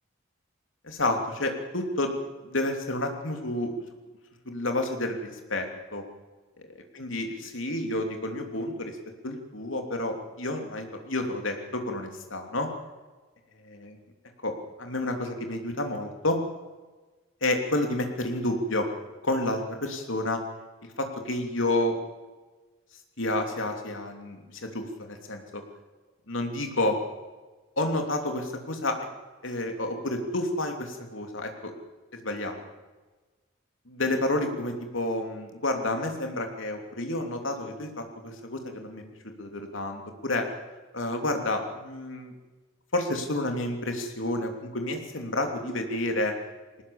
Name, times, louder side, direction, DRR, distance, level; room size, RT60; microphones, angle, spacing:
voice 1, 0.8-2.1 2.4-3.7 4.4-6.0 6.9-9.0 9.2-12.7 13.8-13.9 14.4-16.4 17.4-18.9 19.2-20.4 21.0-22.0 23.2-25.6 26.3-27.0 27.8-29.0 29.4-31.5 32.2-32.6 33.9-39.0 39.4-40.5 40.9-42.3 42.9-46.3, left 1 dB, 80° left, 4 dB, 3.1 m, -30 dB
21.0 x 18.5 x 7.2 m, 1.3 s
head